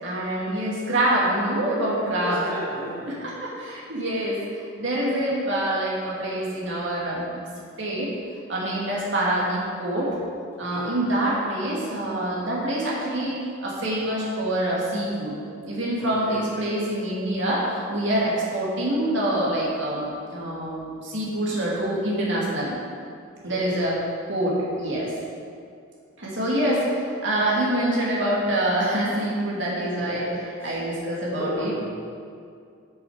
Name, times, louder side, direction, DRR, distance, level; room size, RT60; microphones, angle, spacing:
voice 1, 0.0-2.4 3.1-4.4 4.8-7.4 7.8-8.1 8.5-10.1 10.6-15.4 15.6-22.8 23.4-24.0 24.3-25.1 26.2-31.7, right 1 dB, 65° right, -5 dB, 2.3 m, -26 dB
voice 2, 2.2-3.1 10.6-11.0 16.0-16.5 16.8-16.9 23.5-23.8 30.0-30.2 30.6-30.8 31.1-31.9, left 1 dB, 10° left, -8 dB, 2.2 m, -34 dB
9.4 x 6.6 x 5.0 m, 2.3 s
head